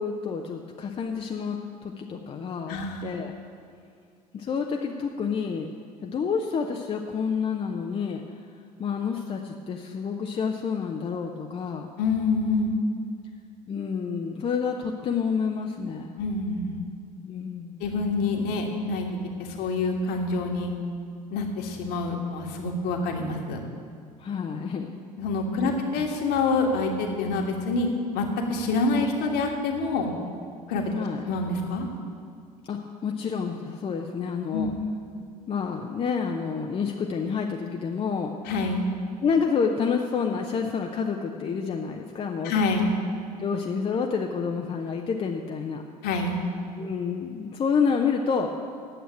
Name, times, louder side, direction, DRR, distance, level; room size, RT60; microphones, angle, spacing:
voice 1, 0.0-3.3 4.3-5.7 6.0-8.2 8.8-11.9 13.7-16.2 17.2-17.8 24.2-24.9 25.6-26.1 30.9-31.3 32.7-34.7 35.5-38.3 39.2-42.5 43.4-45.8 46.8-48.5, left 6 dB, 25° left, 2 dB, 0.7 m, -29 dB
voice 2, 2.7-3.0 12.0-12.7 16.2-16.8 17.8-19.1 19.4-20.7 21.3-23.6 25.2-27.9 28.1-30.1 30.7-30.9 31.3-31.9 34.5-34.8 38.5-38.8 42.4-42.9 46.0-46.4, left 3 dB, 50° left, 2 dB, 1.6 m, -26 dB
8.9 x 7.9 x 8.7 m, 2.2 s
figure-of-eight pair, 65°, 21 cm